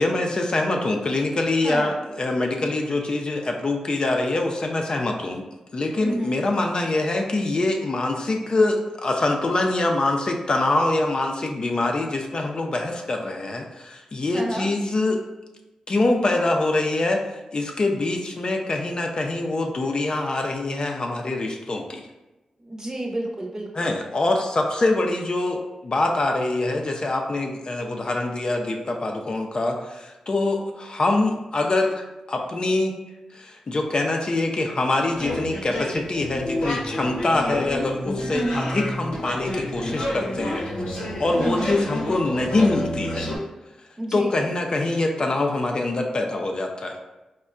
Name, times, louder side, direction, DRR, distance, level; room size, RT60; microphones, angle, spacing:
voice 1, 0.0-5.4 5.7-15.2 15.9-17.2 17.5-22.1 23.7-33.0 33.3-40.7 41.2-43.3 44.1-47.0, left 2 dB, 45° left, 2 dB, 0.4 m, -24 dB
voice 2, 1.6-1.9 6.0-6.4 14.3-14.7 22.6-23.9 38.3-38.7 41.3-41.8 44.0-44.3, right 1 dB, 30° right, -1 dB, 0.7 m, -29 dB
sound 1, 35.1-43.4, left 1 dB, 90° left, 0.7 m, -29 dB
4.2 x 2.1 x 2.4 m, 1.1 s
cardioid pair, 55°, 2 cm